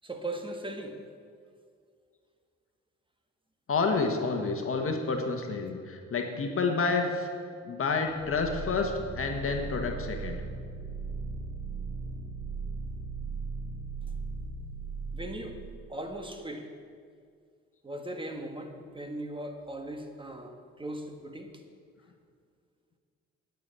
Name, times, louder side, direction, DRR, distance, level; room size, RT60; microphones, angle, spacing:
voice 1, 0.0-1.0 15.1-15.6 15.9-16.7 17.8-21.5, right 1 dB, 15° right, 5 dB, 1.5 m, -38 dB
voice 2, 3.7-7.3 7.6-10.4, left 4 dB, 45° left, 3 dB, 1.4 m, -29 dB
sound 1, 8.1-15.9, right 4 dB, 75° right, 2.2 m, -38 dB
9.3 x 8.6 x 8.2 m, 2.1 s
cardioid pair, 90°, 30 cm